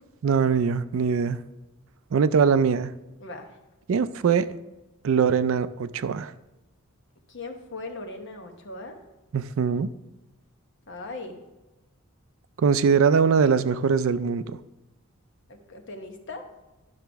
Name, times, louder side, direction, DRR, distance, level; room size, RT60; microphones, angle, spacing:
voice 1, 0.2-1.4 2.1-2.9 3.9-4.5 5.0-6.3 9.3-9.9 12.6-14.6, right 6 dB, 65° right, 0.4 m, -22 dB
voice 2, 7.3-9.0 10.9-11.4 15.5-16.5, left 2 dB, 55° left, 1.0 m, -39 dB
12.0 x 5.8 x 3.4 m
head